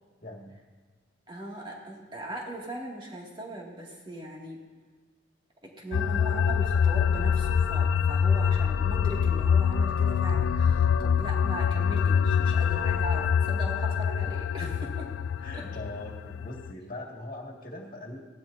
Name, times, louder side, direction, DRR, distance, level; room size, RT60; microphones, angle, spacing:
voice 1, 0.2-0.5 14.6-14.7 15.4-18.2, left 1 dB, 45° left, 0 dB, 2.1 m, -41 dB
voice 2, 1.3-4.6 5.6-14.7 15.0-15.1 15.5-15.7, right 1 dB, 25° right, -3 dB, 2.2 m, -39 dB
sound 1, 5.9-16.7, left 7 dB, 80° left, 0.3 m, -25 dB
17.0 x 12.5 x 2.7 m, 1.4 s
head